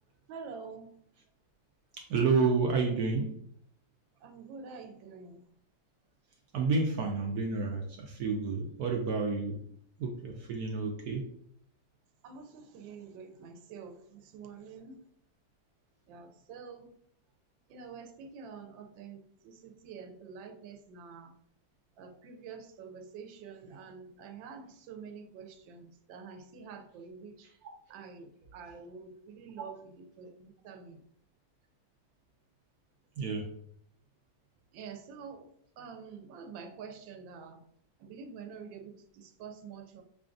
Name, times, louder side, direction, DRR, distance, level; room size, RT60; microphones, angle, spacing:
voice 1, 0.3-0.9 4.2-5.4 12.2-15.0 16.1-16.9 17.7-21.3 22.0-27.5 27.9-31.0 34.7-35.5 35.8-37.6 38.0-40.0, right 5 dB, 90° right, 6 dB, 1.3 m, -47 dB
voice 2, 1.9-3.4 6.5-9.6 10.0-11.3 29.6-29.7 33.2-33.5, right 4 dB, 70° right, 2 dB, 0.9 m, -30 dB
5.6 x 2.3 x 2.5 m, 0.65 s
omnidirectional pair, 2.0 m